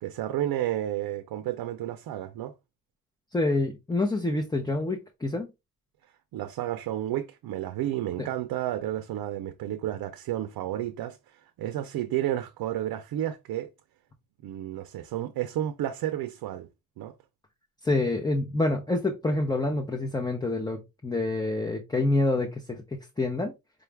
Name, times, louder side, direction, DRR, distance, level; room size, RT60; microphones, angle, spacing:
voice 1, 0.0-2.5 6.3-13.7 14.4-16.7 17.0-17.1, right 12 dB, 90° right, 0.6 m, -31 dB
voice 2, 3.3-5.5 17.8-23.5, left 2 dB, 10° left, 0.5 m, -27 dB
5.0 x 2.3 x 3.2 m
cardioid pair, 145°, 35 cm